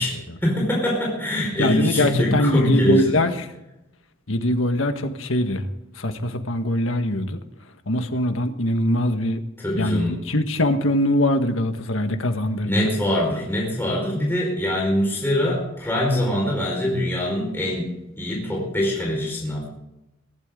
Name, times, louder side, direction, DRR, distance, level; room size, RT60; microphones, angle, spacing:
voice 1, 0.0-3.3 9.6-10.1 12.6-17.9 18.2-19.7, left 1 dB, 10° left, -3 dB, 5.1 m, -23 dB
voice 2, 1.6-3.5 4.3-5.6 6.0-7.4 7.9-9.4 9.8-12.9, left 1 dB, 85° left, 7 dB, 1.6 m, -22 dB
24.0 x 12.5 x 3.9 m, 0.92 s
head